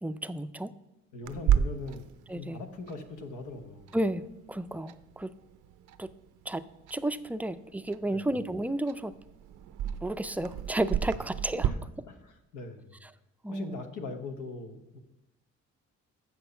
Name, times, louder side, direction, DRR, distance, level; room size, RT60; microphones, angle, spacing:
voice 1, 0.0-0.7 2.3-2.6 3.9-5.3 6.0-6.1 6.5-6.6 6.9-9.1 10.0-11.7 13.4-13.8, right 1 dB, 5° right, 12 dB, 0.3 m, -32 dB
voice 2, 1.1-3.9 8.0-8.3 11.6-13.0 13.5-15.0, left 3 dB, 90° left, 7 dB, 1.1 m, -41 dB
Clock, 1.2-11.7, right 9 dB, 80° right, 0.6 m, -34 dB
7.1 x 6.1 x 6.9 m, 0.91 s
cardioid pair, 90°, 30 cm